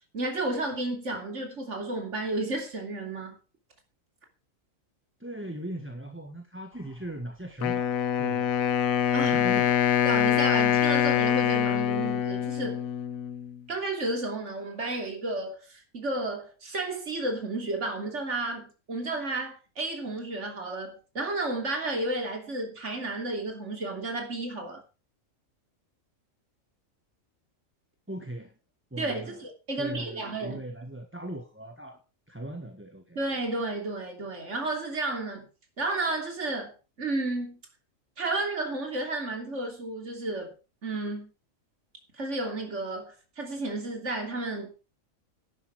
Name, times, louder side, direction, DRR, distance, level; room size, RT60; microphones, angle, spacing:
voice 1, 0.1-3.4 9.1-9.4 10.1-12.8 13.7-24.8 29.0-30.6 33.2-35.5 35.8-37.6 38.2-40.5 40.8-41.3 42.1-44.7, right 2 dB, 60° right, 3.4 m, -32 dB
voice 2, 5.2-8.5 9.2-9.8 28.1-28.5 28.9-29.4 29.7-32.0 32.3-33.2, right 1 dB, 10° right, 1.4 m, -39 dB
Wind instrument woodwind instrument, 7.6-13.6, left 9 dB, 90° left, 1.3 m, -25 dB
12.5 x 11.5 x 4.8 m
omnidirectional pair, 1.4 m